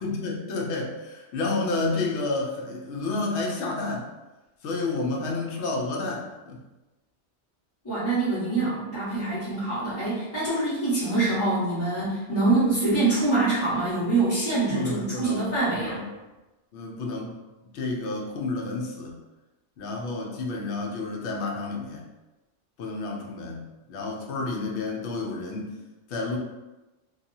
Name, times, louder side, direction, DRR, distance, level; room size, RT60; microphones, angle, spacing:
voice 1, 0.0-4.1 4.6-6.6 14.7-16.1 16.7-17.3 17.7-19.2 19.8-22.1 22.8-25.7 26.1-26.4, left 3 dB, 85° left, -1 dB, 0.9 m, -30 dB
voice 2, 7.8-16.0, right 2 dB, 15° left, -11 dB, 1.2 m, -25 dB
2.7 x 2.2 x 2.6 m, 1.1 s
omnidirectional pair, 1.1 m